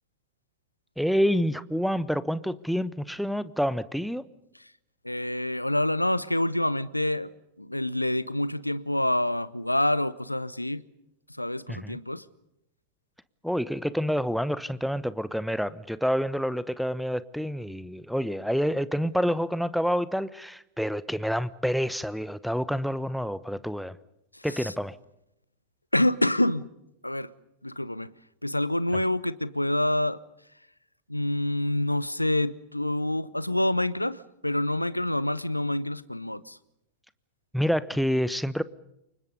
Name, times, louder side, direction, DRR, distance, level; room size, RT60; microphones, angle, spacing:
voice 1, 1.0-4.3 11.7-12.0 13.4-24.0 24.4-25.0 37.5-38.6, equal, ahead, 1.1 m, -28 dB
voice 2, 5.0-7.3 7.6-10.8 11.4-12.2 24.3-24.7 25.9-26.7 27.0-27.3 27.6-28.1 28.4-30.2 31.1-36.6, left 1 dB, 85° left, 0.9 m, -27 dB
29.0 x 25.0 x 5.4 m
figure-of-eight pair, 90°, 0 cm